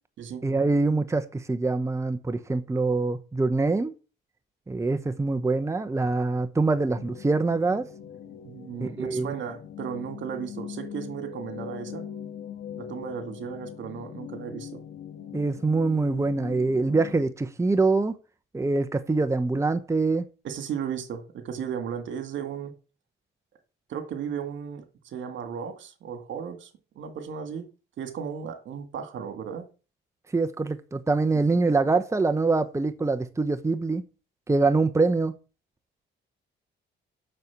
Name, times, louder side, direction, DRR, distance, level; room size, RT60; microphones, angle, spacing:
voice 1, 0.4-3.9 4.7-7.8 8.8-9.3 15.3-18.2 18.5-20.2 30.3-34.0 34.5-35.3, right 3 dB, 15° right, 0.9 m, -24 dB
sound 1, 6.9-17.3, left 9 dB, 75° left, 1.4 m, -41 dB
voice 2, 8.4-12.0 12.8-14.8 20.4-22.7 23.9-26.7 27.0-27.7 28.0-29.7, right 7 dB, 70° right, 2.3 m, -35 dB
7.7 x 6.6 x 7.2 m
cardioid pair, 90°, 20 cm